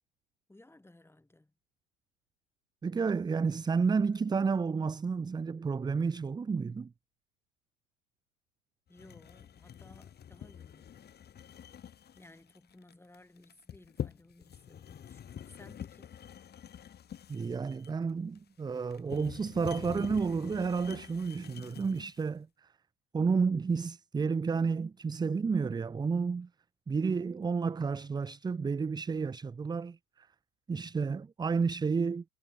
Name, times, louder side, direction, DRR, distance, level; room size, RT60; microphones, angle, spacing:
voice 1, 0.5-1.5 8.9-11.1 12.2-16.1, left 2 dB, 5° left, 7.2 m, -58 dB
voice 2, 2.8-6.9 17.3-22.7 23.1-26.5 26.9-30.3 30.7-32.2, right 5 dB, 10° right, 0.7 m, -31 dB
sound 1, 9.0-22.3, left 9 dB, 25° left, 1.7 m, -46 dB
figure-of-eight pair, 80°, 39 cm